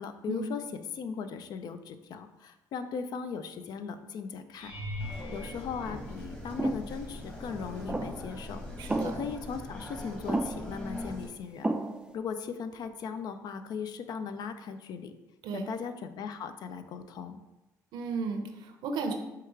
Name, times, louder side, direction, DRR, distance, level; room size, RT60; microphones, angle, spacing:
voice 1, 0.0-4.7 5.3-8.6 9.0-11.7 12.1-15.1 15.5-17.4, left 6 dB, 60° left, 9 dB, 0.4 m, -38 dB
sound 1, 4.5-6.8 7.5-8.0 8.3-8.5 12.8-12.9, left 1 dB, 80° left, 1.4 m, -42 dB
sound 2, 5.0-11.3, left 1 dB, 15° left, 1.1 m, -41 dB
sound 3, 6.6-6.9 7.9-8.3 8.9-9.4 10.3-10.8 11.6-12.2, right 2 dB, 10° right, 0.3 m, -32 dB
voice 2, 8.8-9.1 15.4-15.7 17.9-19.2, right 4 dB, 75° right, 5 dB, 0.6 m, -34 dB
4.6 x 2.4 x 4.5 m, 1.0 s
supercardioid pair, 75°, 8 cm